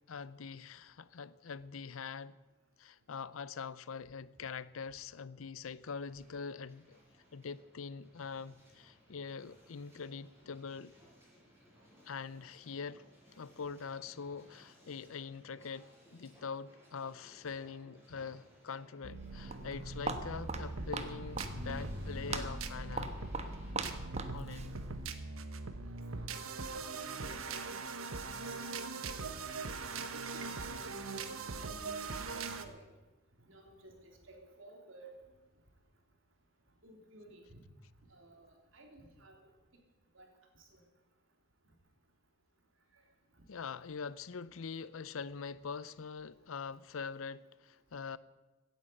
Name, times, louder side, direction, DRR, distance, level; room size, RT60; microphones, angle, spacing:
voice 1, 0.1-2.4 2.8-7.0 7.3-10.9 12.1-13.0 13.4-23.2 24.3-24.7 43.5-48.2, left 5 dB, 80° left, 0.6 m, -44 dB
Hiss, 5.8-23.7, equal, 15° right, 6.3 m, -63 dB
Walk footsteps, 19.0-25.2, right 3 dB, 30° right, 1.1 m, -41 dB
sound 1, 19.0-32.6, right 3 dB, 85° right, 1.2 m, -41 dB
voice 2, 25.8-27.9 28.6-28.7 30.1-31.3 31.6-32.9 33.4-35.2 36.8-37.6 38.1-39.4 40.1-40.3 40.6-40.8, right 1 dB, 70° right, 3.3 m, -56 dB
16.0 x 10.5 x 7.9 m
head